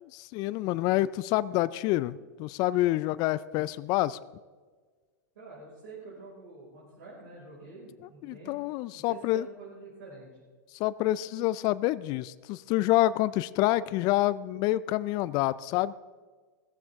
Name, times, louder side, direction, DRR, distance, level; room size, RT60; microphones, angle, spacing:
voice 1, 0.1-4.2 8.2-9.5 10.7-15.9, left 16 dB, 45° left, 18 dB, 0.4 m, -27 dB
voice 2, 5.4-8.6 8.9-10.3, right 3 dB, 70° right, -7 dB, 5.2 m, -47 dB
16.0 x 14.5 x 3.6 m, 1.5 s
hypercardioid pair, 100°, 10 cm